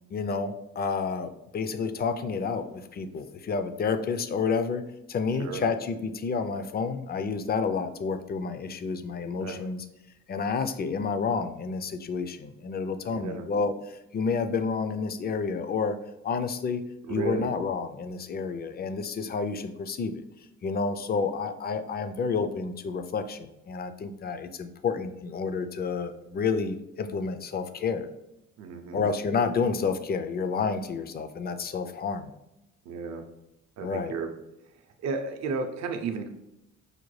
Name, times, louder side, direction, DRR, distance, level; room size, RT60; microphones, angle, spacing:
voice 1, 0.1-4.8 5.1-9.8 10.3-16.0 16.2-16.8 17.1-20.2 20.6-28.1 28.9-32.3 33.8-34.1, left 5 dB, 35° left, 9 dB, 0.4 m, -30 dB
voice 2, 13.1-13.4 17.1-17.5 28.6-29.0 32.9-33.2 33.8-34.3 35.0-36.3, right 4 dB, 60° right, 5 dB, 0.5 m, -33 dB
5.0 x 2.2 x 3.1 m, 0.88 s
cardioid pair, 90°, 30 cm